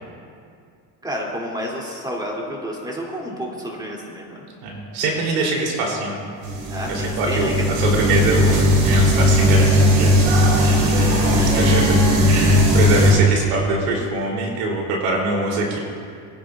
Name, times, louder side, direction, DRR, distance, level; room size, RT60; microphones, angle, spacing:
voice 1, 1.0-4.5 6.7-7.7 10.5-11.7, equal, 10° right, -3 dB, 2.9 m, -31 dB
voice 2, 4.6-6.2 6.9-10.1 10.5-12.0 12.2-15.8, right 2 dB, 90° right, -2 dB, 3.5 m, -24 dB
sound 1, 6.4-13.1, equal, 60° right, 3.2 m, -17 dB
23.5 x 10.0 x 2.5 m, 2.3 s
cardioid pair, 115°, 46 cm